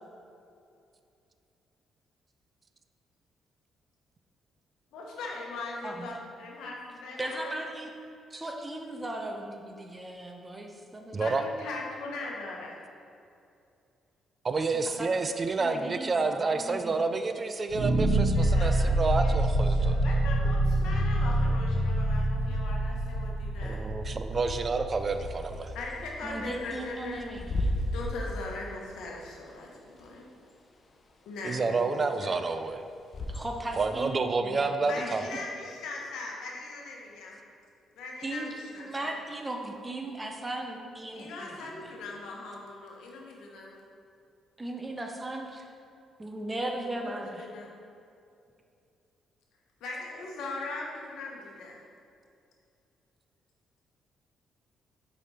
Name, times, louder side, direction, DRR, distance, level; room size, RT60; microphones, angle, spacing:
voice 1, 4.9-7.5 11.2-12.8 18.3-19.4 19.7-23.8 25.7-27.2 27.9-30.3 31.2-31.8 32.2-32.3 34.9-37.4 37.9-39.1 41.1-43.7 46.9-47.7 49.8-51.8, left 3 dB, 85° left, -1 dB, 1.1 m, -40 dB
voice 2, 7.2-7.9 8.3-11.3 14.9-15.1 15.6-17.0 26.2-27.7 33.3-35.2 38.2-41.9 44.6-45.7 46.2-47.5, right 1 dB, 20° right, 2 dB, 0.8 m, -37 dB
voice 3, 14.4-20.0 23.6-25.7 31.4-32.8 33.8-35.4, right 3 dB, 35° right, 8 dB, 0.3 m, -29 dB
sound 1, 17.7-26.8, right 1 dB, 65° right, 1.0 m, -27 dB
Bird / Wind, 25.1-33.8, left 1 dB, 45° left, 0.7 m, -37 dB
5.0 x 5.0 x 4.3 m, 2.5 s
cardioid pair, 90°, 0 cm